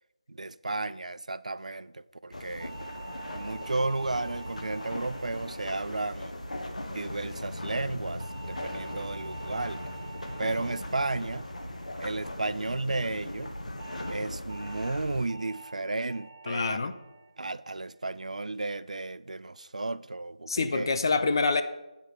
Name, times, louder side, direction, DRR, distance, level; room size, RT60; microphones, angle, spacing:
voice 1, 0.3-2.7 3.3-6.3 6.9-9.8 10.4-11.5 12.0-13.5 14.1-16.9 17.4-20.9, right 2 dB, 70° right, 0.3 m, -33 dB
sound 1, 2.3-15.3, left 1 dB, 75° left, 1.1 m, -39 dB
sound 2, 2.6-7.1 8.2-12.7 13.8-14.1 14.5-14.9 15.3-15.7 16.1-16.5 16.9-17.3 17.7-18.1, right 4 dB, 25° right, 0.8 m, -48 dB
voice 2, 16.5-16.9 20.5-21.6, left 4 dB, 35° left, 0.5 m, -26 dB
9.2 x 3.4 x 6.2 m
figure-of-eight pair, 165°, 4 cm